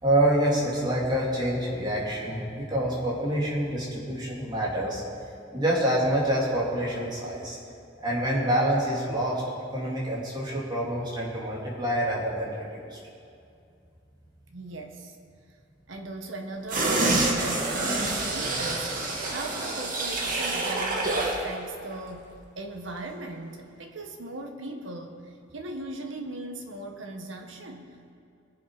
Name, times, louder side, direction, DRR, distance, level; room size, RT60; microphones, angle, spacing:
voice 1, 0.0-5.0 5.5-7.6 8.0-9.4 9.7-13.0, right 1 dB, 25° right, -6 dB, 3.1 m, -26 dB
voice 2, 14.5-15.1 15.9-18.9 19.3-22.3 22.6-28.1, right 2 dB, 85° right, 3 dB, 1.5 m, -39 dB
sound 1, 16.7-21.4 21.8-21.9, right 2 dB, 45° right, 1.9 m, -27 dB
22.0 x 7.5 x 5.0 m, 2.5 s
head